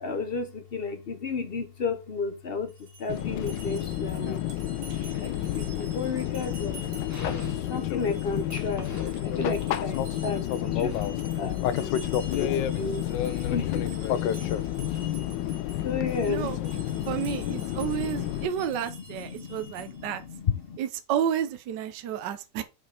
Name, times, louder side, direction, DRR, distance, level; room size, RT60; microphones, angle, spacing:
voice 1, 0.0-4.4 5.1-6.8 7.5-8.9 9.2-11.1 11.3-11.6 12.3-13.9 15.8-16.5 16.9-17.3 17.7-20.8, left 4 dB, 50° left, 0.7 m, -33 dB
Dog, 1.5-20.7, equal, 10° left, 1.8 m, -50 dB
sound 1, 2.7-20.1, right 3 dB, 90° right, 2.3 m, -49 dB
Fixed-wing aircraft airplane, 3.1-18.5, left 11 dB, 80° left, 1.3 m, -30 dB
voice 2, 17.1-20.2 20.8-22.6, right 9 dB, 75° right, 1.4 m, -31 dB
6.2 x 5.2 x 4.3 m
omnidirectional pair, 1.9 m